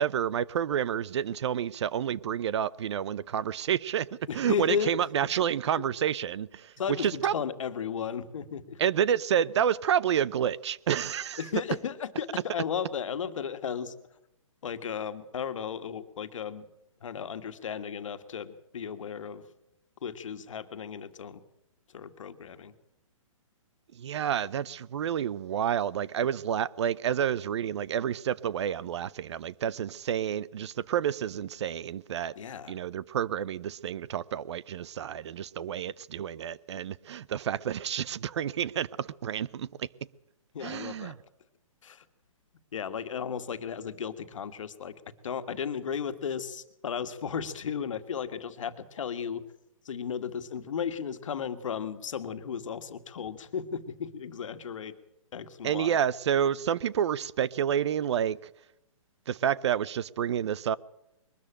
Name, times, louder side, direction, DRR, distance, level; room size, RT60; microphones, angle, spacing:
voice 1, 0.0-6.7 7.0-7.3 8.8-11.4 23.9-32.3 32.7-39.9 40.6-41.1 55.6-58.5 59.3-60.8, right 9 dB, 55° right, 0.7 m, -29 dB
voice 2, 4.3-4.9 6.8-8.8 11.4-13.9 14.6-16.7 17.0-19.4 20.0-21.4 21.9-22.7 32.3-32.8 40.5-41.1 41.8-42.0 42.7-49.4 49.8-55.0 55.3-56.0, left 7 dB, 65° left, 1.7 m, -35 dB
22.0 x 13.5 x 8.8 m
hypercardioid pair, 150°, 17 cm